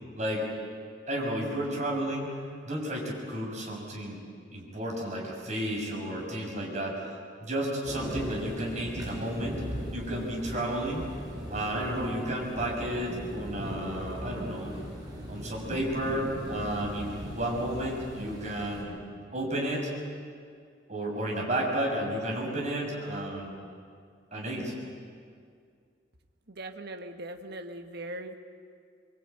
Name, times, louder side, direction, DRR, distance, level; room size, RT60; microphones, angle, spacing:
voice 1, 0.1-0.5 1.1-2.4 2.6-4.2 4.5-9.6 9.9-11.0 11.5-14.8 15.3-19.0 19.3-19.9 20.9-23.7 24.3-24.7, right 1 dB, 40° right, -2 dB, 6.6 m, -32 dB
sound 1, 7.8-18.8, equal, 20° right, 6.7 m, -39 dB
voice 2, 26.5-28.3, right 1 dB, 60° right, 5 dB, 1.5 m, -40 dB
25.0 x 23.5 x 9.1 m, 2.2 s
head